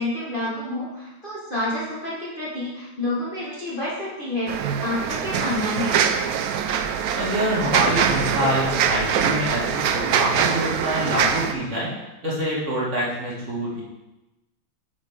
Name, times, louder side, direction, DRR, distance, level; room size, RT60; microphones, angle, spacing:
voice 1, 0.0-6.0, left 2 dB, 30° left, -7 dB, 1.5 m, -29 dB
sound 1, 4.5-11.5, right 7 dB, 75° right, 0.8 m, -23 dB
voice 2, 7.1-11.9 12.2-13.8, equal, 40° right, -6 dB, 2.1 m, -25 dB
9.0 x 6.5 x 3.6 m, 1.0 s
omnidirectional pair, 2.1 m